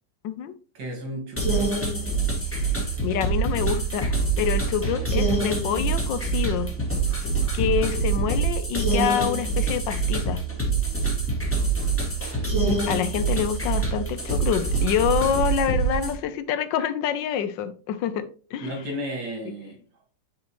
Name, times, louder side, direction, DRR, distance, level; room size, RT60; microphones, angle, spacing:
voice 1, 0.7-1.7 18.6-19.8, equal, 75° right, 2.5 m, -33 dB
sound 1, 1.4-16.1, right 4 dB, 5° left, 1.5 m, -25 dB
voice 2, 3.0-6.7 7.5-10.4 12.6-18.7, left 9 dB, 80° left, 1.3 m, -27 dB
9.8 x 4.2 x 3.0 m
omnidirectional pair, 2.0 m